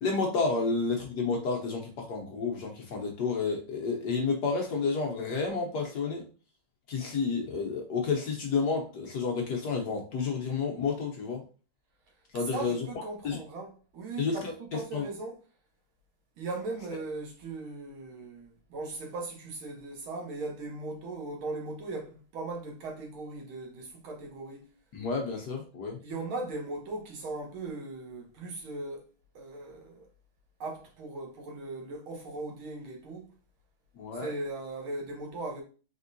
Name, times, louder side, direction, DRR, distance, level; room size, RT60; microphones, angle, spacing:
voice 1, 0.0-6.2 6.9-11.4 12.3-12.9 13.2-13.4 14.2-15.0 24.9-26.0 34.0-34.3, left 4 dB, 60° left, 1.2 m, -30 dB
voice 2, 12.5-15.4 16.4-24.7 26.0-29.1 29.3-30.1 30.6-33.3 34.1-35.6, right 2 dB, 75° right, 1.9 m, -38 dB
4.3 x 3.5 x 2.6 m
omnidirectional pair, 2.3 m